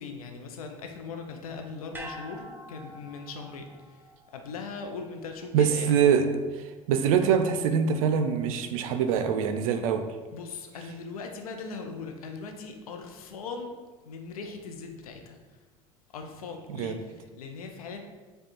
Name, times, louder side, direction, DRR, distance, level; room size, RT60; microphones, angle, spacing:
voice 1, 0.0-3.7 4.3-6.3 10.3-13.7 14.0-15.4 16.1-18.0, left 4 dB, 80° left, 4 dB, 0.6 m, -39 dB
sound 1, 1.9-6.3 6.6-6.7, equal, 10° right, 0.8 m, -46 dB
voice 2, 5.5-6.3 6.5-10.1 16.7-17.0, right 7 dB, 70° right, 8 dB, 0.4 m, -24 dB
5.1 x 2.3 x 4.2 m, 1.3 s
hypercardioid pair, 65°, 18 cm